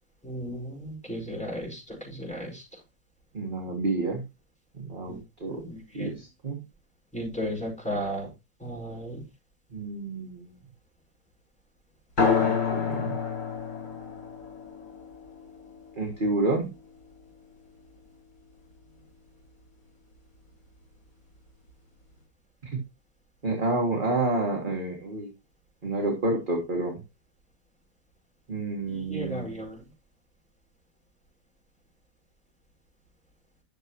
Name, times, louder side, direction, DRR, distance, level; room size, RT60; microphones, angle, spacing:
voice 1, 0.2-2.6 5.1-5.2 5.5-6.1 7.1-8.3 8.6-9.2 28.9-29.8, equal, 5° left, -2 dB, 4.9 m, -35 dB
voice 2, 3.3-4.2 4.7-5.6 5.9-6.6 9.7-10.5 12.4-13.2 16.0-16.7 22.7-22.8 23.4-25.3 25.8-27.0 28.5-29.6, right 2 dB, 30° right, 0 dB, 1.6 m, -29 dB
sound 1, 12.2-17.2, left 6 dB, 90° left, 5.6 m, -29 dB
12.0 x 6.7 x 2.9 m, 0.24 s
omnidirectional pair, 1.9 m